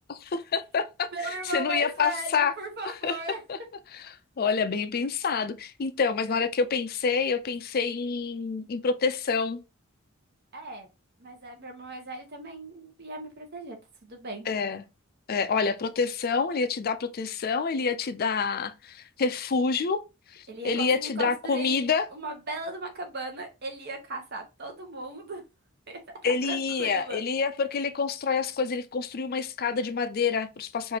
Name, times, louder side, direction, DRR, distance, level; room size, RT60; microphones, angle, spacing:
voice 1, 0.2-2.5 2.8-3.6 3.9-9.6 14.5-14.8 15.3-20.0 20.3-22.1 26.2-31.0, left 5 dB, 45° left, 0.4 m, -27 dB
voice 2, 1.1-3.4 10.5-10.9 11.2-13.8 14.0-14.5 20.5-25.4 25.9-27.2, right 2 dB, 50° right, 1.1 m, -37 dB
4.8 x 2.6 x 2.9 m
head